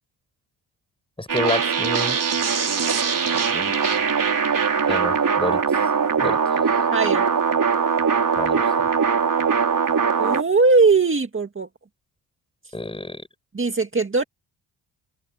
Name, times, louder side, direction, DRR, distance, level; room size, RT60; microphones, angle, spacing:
voice 1, 1.2-2.2 3.5-3.7 4.9-5.8 6.2-6.4 8.4-8.9 12.7-13.2, left 2 dB, 10° left, 5.2 m, -29 dB
sound 1, 1.3-10.4, right 6 dB, 45° right, 4.0 m, -21 dB
voice 2, 6.9-7.3 10.2-11.7 12.7-12.8 13.5-14.2, right 4 dB, 25° right, 2.0 m, -19 dB
open air
cardioid pair, 95°, 45 cm